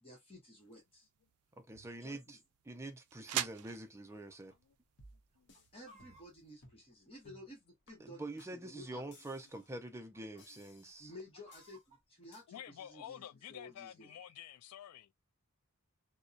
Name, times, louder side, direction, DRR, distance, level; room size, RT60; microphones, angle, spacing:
voice 1, 0.0-1.1 2.0-2.4 5.7-9.1 11.0-14.3, left 1 dB, 25° left, 1.0 m, -54 dB
sound 1, 0.6-6.5, right 12 dB, 80° right, 0.3 m, -45 dB
voice 2, 1.6-2.4 2.7-4.5 8.0-11.1, right 2 dB, 10° right, 0.4 m, -46 dB
Chicken rooster, 4.1-4.6 4.8-4.9 5.4-7.6 8.3-9.1 9.4-9.7 9.9-10.4 10.9-12.0, right 1 dB, 30° right, 0.9 m, -63 dB
sound 2, 5.0-5.7 6.0-6.3 6.6-6.9 7.2-7.5 7.9-8.0 8.4-8.5 9.1-9.7 10.4-11.1 11.5-11.8 12.3-12.4, left 1 dB, 55° left, 0.8 m, -61 dB
voice 3, 12.5-15.1, left 10 dB, 75° left, 0.3 m, -50 dB
2.6 x 2.1 x 2.4 m
head